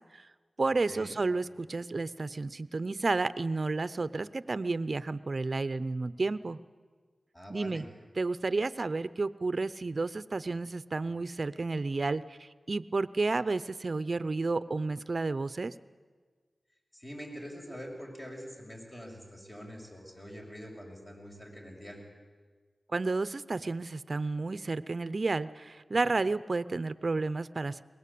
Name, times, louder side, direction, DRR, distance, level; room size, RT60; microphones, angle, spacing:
voice 1, 0.6-6.6 7.5-7.8 8.2-15.7 22.9-27.8, right 3 dB, 55° right, 16 dB, 0.7 m, -31 dB
voice 2, 7.3-7.8 16.9-22.0, equal, 30° left, 0 dB, 6.5 m, -45 dB
22.5 x 19.0 x 8.6 m, 1.5 s
cardioid pair, 45°, 0 cm